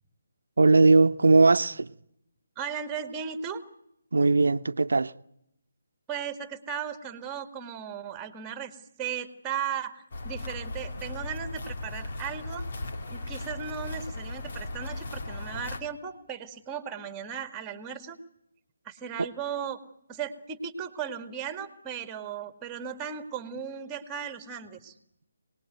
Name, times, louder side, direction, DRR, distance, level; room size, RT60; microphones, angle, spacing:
voice 1, 0.6-1.9 4.1-5.1 19.2-19.3, right 3 dB, 75° right, 0.9 m, -19 dB
voice 2, 2.6-3.6 6.1-12.6 13.1-18.2 18.9-19.8 20.1-24.9, right 7 dB, 15° right, 2.0 m, -36 dB
sound 1, 10.1-15.8, left 2 dB, 50° left, 2.6 m, -37 dB
25.5 x 19.5 x 9.3 m
figure-of-eight pair, 155°, 0 cm